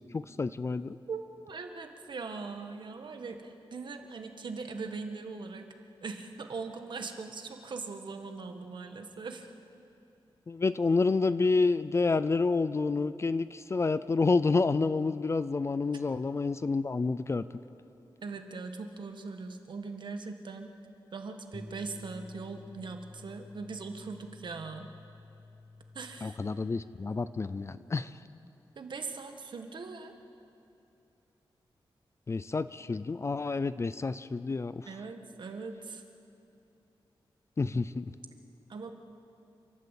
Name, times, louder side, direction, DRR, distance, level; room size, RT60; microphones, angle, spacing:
voice 1, 0.1-1.0 10.5-17.5 26.2-28.1 32.3-34.9 37.6-38.1, left 4 dB, 30° left, 14 dB, 0.5 m, -29 dB
voice 2, 1.1-5.7 6.0-9.5 18.2-20.7 21.1-24.9 25.9-26.4 28.7-30.1 34.9-36.0 38.7-38.9, right 4 dB, 60° right, 6 dB, 1.7 m, -40 dB
sound 1, 21.5-27.8, left 2 dB, 10° left, 1.2 m, -51 dB
29.5 x 13.0 x 8.4 m, 2.8 s
wide cardioid pair, 145°, 9 cm